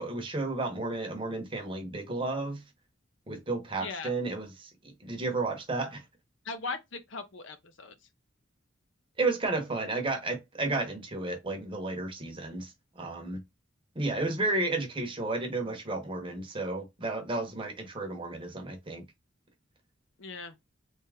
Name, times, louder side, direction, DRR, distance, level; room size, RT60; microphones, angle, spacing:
voice 1, 0.0-2.6 3.3-6.0 9.2-13.4 14.0-19.0, right 2 dB, 25° right, 0.9 m, -32 dB
voice 2, 3.8-4.1 6.4-7.9 20.2-20.5, left 4 dB, 65° left, 0.7 m, -39 dB
3.5 x 2.8 x 3.4 m
head